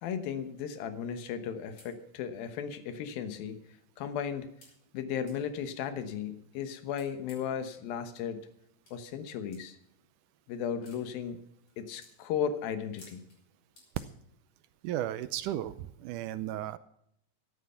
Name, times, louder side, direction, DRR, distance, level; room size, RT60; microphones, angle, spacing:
voice 1, 0.0-3.6 4.0-4.5 4.9-8.4 8.9-9.8 10.5-11.4 11.8-13.2, left 8 dB, 90° left, 10 dB, 3.0 m, -35 dB
sound 1, 1.5-1.6 1.8-1.9 2.8-2.9 3.3-3.4 4.6-4.8 5.3-5.4 6.9-7.6 8.9-9.0 9.5-9.6 10.8-11.0 11.6-11.7 12.0-12.2 13.0-13.4 13.8-14.0, left 2 dB, 45° left, 6.6 m, -55 dB
voice 2, 14.8-16.8, right 12 dB, 80° right, 14 dB, 1.9 m, -35 dB
14.5 x 11.0 x 5.7 m, 0.74 s
omnidirectional pair, 4.0 m